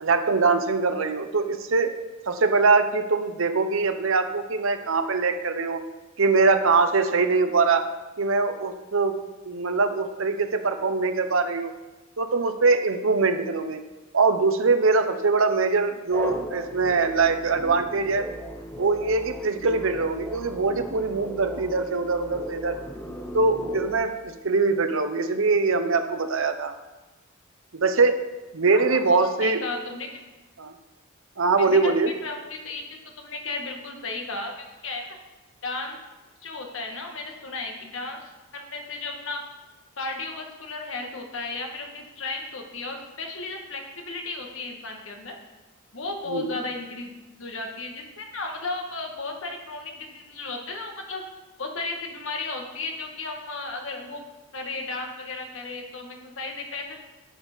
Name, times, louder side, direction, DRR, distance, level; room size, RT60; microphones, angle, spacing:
voice 1, 0.0-1.9 2.3-5.9 6.2-7.9 8.2-9.2 9.5-11.7 12.2-13.8 14.1-18.3 18.8-22.8 23.3-26.7 27.7-28.2 28.5-29.6 30.6-30.7 31.4-32.1 46.3-46.5, right 4 dB, 70° right, 7 dB, 0.8 m, -23 dB
sound 1, 16.1-23.9, equal, 10° left, 0.7 m, -37 dB
voice 2, 28.7-30.2 31.6-35.2 35.6-36.0 36.4-39.4 40.0-45.4 45.9-47.1 47.4-51.2 51.6-54.2 54.5-57.0, left 3 dB, 65° left, 2 dB, 1.6 m, -34 dB
11.0 x 6.5 x 5.2 m, 1.2 s
head